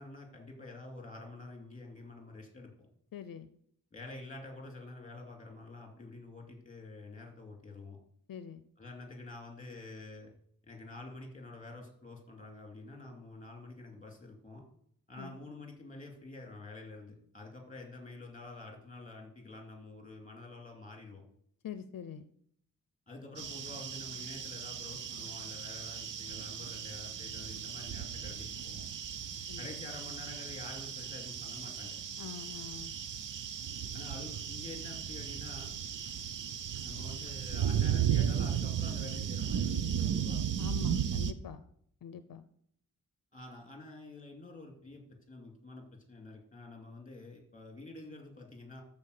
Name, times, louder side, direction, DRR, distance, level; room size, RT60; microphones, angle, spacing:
voice 1, 0.0-2.7 3.9-8.0 8.8-10.3 10.6-14.6 15.1-21.2 23.1-28.8 29.6-32.0 33.9-35.7 36.8-40.5 43.3-48.8, left 2 dB, 20° left, 1 dB, 2.5 m, -48 dB
voice 2, 3.1-3.5 8.3-8.7 15.2-15.4 21.6-22.3 29.5-29.7 32.2-32.9 40.6-41.6 42.0-42.5, left 8 dB, 75° left, 12 dB, 0.6 m, -44 dB
sound 1, 23.4-41.3, right 9 dB, 65° right, 0.7 m, -35 dB
13.5 x 4.5 x 6.5 m, 0.67 s
wide cardioid pair, 160°, 34 cm